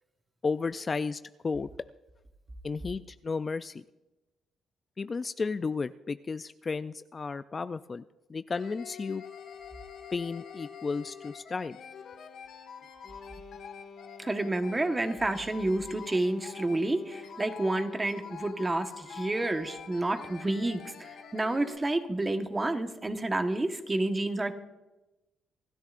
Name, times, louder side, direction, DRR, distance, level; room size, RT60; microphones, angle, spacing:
voice 1, 0.4-1.7 2.6-3.8 5.0-8.0 8.3-9.2 10.1-11.8, left 4 dB, 35° left, 13 dB, 0.3 m, -33 dB
sound 1, 8.5-21.8, left 7 dB, 70° left, 1.5 m, -46 dB
voice 2, 14.2-24.5, right 2 dB, 20° right, 6 dB, 1.3 m, -30 dB
26.5 x 13.0 x 2.5 m, 1.0 s
cardioid pair, 90°, 0 cm